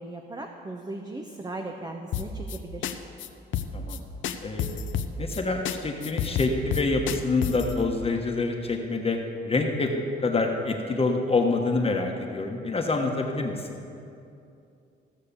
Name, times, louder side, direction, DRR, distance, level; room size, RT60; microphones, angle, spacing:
voice 1, 0.0-3.0, right 2 dB, 20° right, 3 dB, 0.9 m, -37 dB
sound 1, 2.1-2.6 2.8-2.9 3.2-3.3 3.5-4.0 4.2-5.4 5.7-5.8 6.0-7.7, left 9 dB, 75° left, 0.7 m, -29 dB
voice 2, 5.2-9.2 9.4-9.9 10.2-13.8, left 3 dB, 30° left, 2 dB, 1.2 m, -26 dB
15.5 x 6.6 x 7.0 m, 2.6 s
cardioid pair, 90°, 20 cm